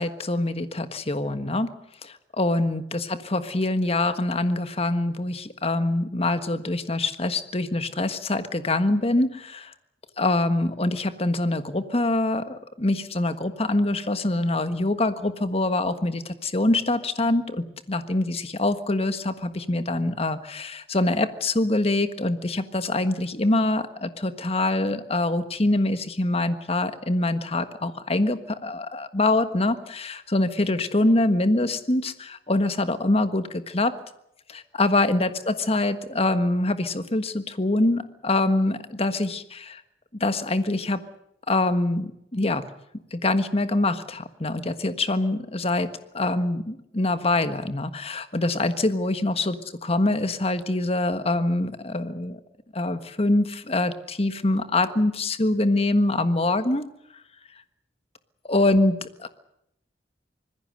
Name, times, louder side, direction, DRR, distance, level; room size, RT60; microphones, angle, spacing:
voice 1, 0.0-1.7 2.0-9.7 10.2-33.9 34.5-39.8 40.1-41.0 41.5-42.6 43.1-45.9 46.1-49.5 49.8-52.4 52.7-56.8 58.4-59.3, left 2 dB, 35° left, 11 dB, 1.5 m, -24 dB
25.5 x 20.5 x 6.6 m, 0.77 s
head